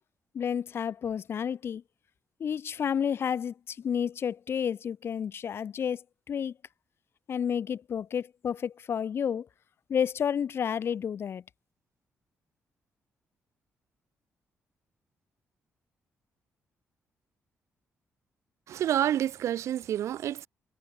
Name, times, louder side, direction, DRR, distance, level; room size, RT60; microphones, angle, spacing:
voice 1, 0.3-1.8 2.4-6.5 7.3-9.5 9.9-11.4, left 8 dB, 55° left, 2.5 m, -31 dB
voice 2, 18.7-20.5, right 11 dB, 80° right, 6.5 m, -28 dB
cardioid pair, 115°, 5 cm